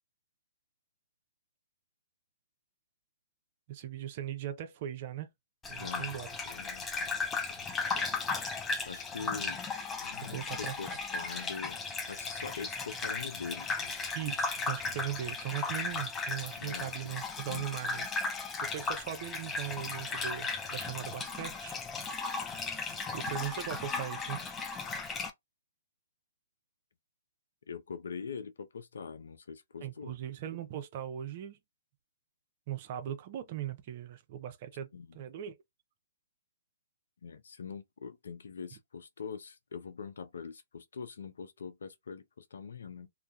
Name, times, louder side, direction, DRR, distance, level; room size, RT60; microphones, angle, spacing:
voice 1, 3.7-5.3 5.7-6.3 9.2-9.4 10.3-10.7 14.1-18.1 18.6-21.8 23.1-24.4 29.8-31.6 32.7-35.6, right 11 dB, 45° right, 0.5 m, -39 dB
Gurgling / Bathtub (filling or washing), 5.6-25.3, left 4 dB, 15° left, 0.4 m, -36 dB
voice 2, 5.7-6.2 6.5-7.3 7.6-8.0 8.9-9.6 10.0-11.8 12.1-14.0 16.6-16.9 17.4-17.8 27.7-30.2 34.9-35.2 37.2-43.1, left 6 dB, 70° left, 0.5 m, -43 dB
2.3 x 2.1 x 2.6 m
hypercardioid pair, 130°, 0 cm